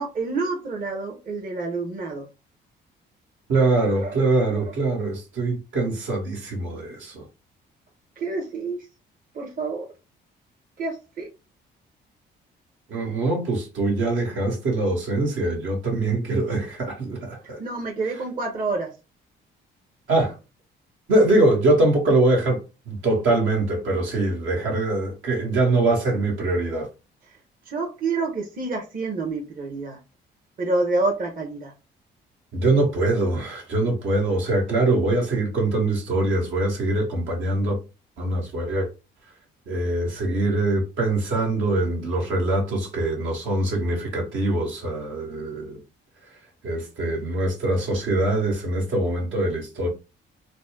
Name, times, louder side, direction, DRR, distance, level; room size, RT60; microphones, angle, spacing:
voice 1, 0.0-2.3 3.7-4.8 8.2-8.9 9.3-9.9 10.8-11.3 17.6-19.0 27.2-27.4 27.6-30.0 30.6-31.7, right 3 dB, 45° right, 1.0 m, -28 dB
voice 2, 3.5-7.2 12.9-17.6 20.1-20.3 21.1-26.9 32.5-37.8 38.2-38.9 39.7-45.8 46.6-49.9, right 2 dB, 75° right, 1.7 m, -23 dB
3.9 x 2.2 x 3.6 m
cardioid pair, 90°, 20 cm